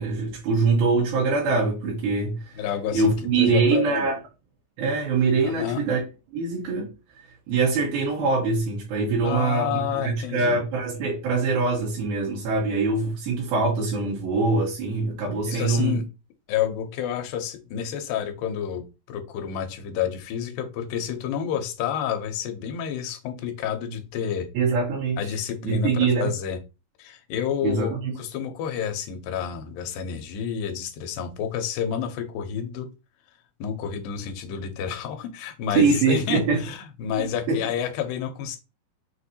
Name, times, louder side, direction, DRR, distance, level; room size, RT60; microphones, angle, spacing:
voice 1, 0.0-2.6 2.9-4.2 4.8-6.0 6.3-6.9 7.5-16.0 24.5-25.3 25.6-26.3 27.6-28.1 35.7-36.6 37.2-37.6, right 4 dB, 85° right, 3.0 m, -23 dB
voice 2, 2.6-3.1 3.4-4.1 5.4-5.8 9.2-10.6 15.5-16.1 16.5-24.5 25.2-26.6 27.0-32.9 33.6-38.6, left 8 dB, 80° left, 2.4 m, -29 dB
6.4 x 2.6 x 2.7 m
omnidirectional pair, 4.2 m